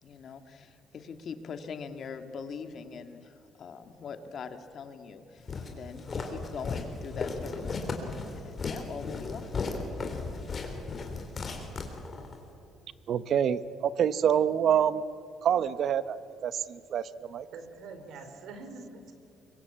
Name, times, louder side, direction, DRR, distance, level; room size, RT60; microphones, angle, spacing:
voice 1, 0.0-8.1 8.3-9.5, left 6 dB, 45° left, 8 dB, 1.9 m, -42 dB
Walk footsteps, 5.5-12.4, left 4 dB, 30° left, 3.6 m, -35 dB
voice 2, 13.1-15.0 15.4-16.2 16.4-17.5, right 8 dB, 50° right, 15 dB, 0.9 m, -26 dB
voice 3, 17.5-19.1, right 3 dB, 70° right, 7 dB, 3.8 m, -44 dB
25.0 x 23.5 x 8.7 m, 2.5 s
cardioid pair, 145°, 0 cm